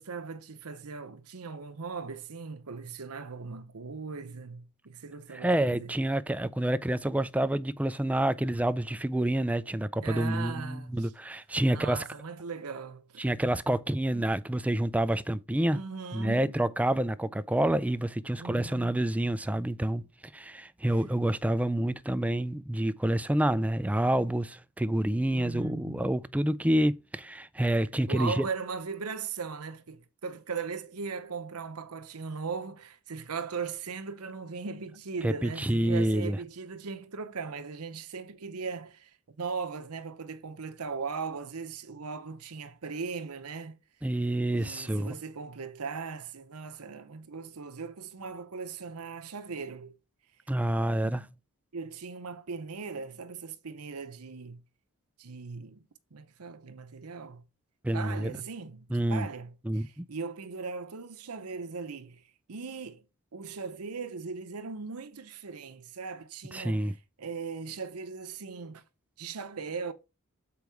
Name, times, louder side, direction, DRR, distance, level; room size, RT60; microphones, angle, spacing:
voice 1, 0.0-5.9 10.0-11.1 11.7-13.2 15.7-16.7 18.4-18.9 25.3-26.1 28.1-43.8 44.5-49.9 51.0-51.3 51.7-54.6 55.2-55.9 56.1-57.4 57.9-62.2 62.5-63.0 63.3-68.8 69.2-69.9, right 5 dB, 85° right, 0.8 m, -39 dB
voice 2, 5.3-12.0 13.2-15.8 16.1-20.1 20.3-28.4 35.2-36.4 44.0-45.1 50.5-51.3 57.8-58.4 58.9-59.3 59.6-60.0 66.5-66.9, right 1 dB, 5° right, 0.3 m, -28 dB
7.0 x 4.7 x 4.6 m
head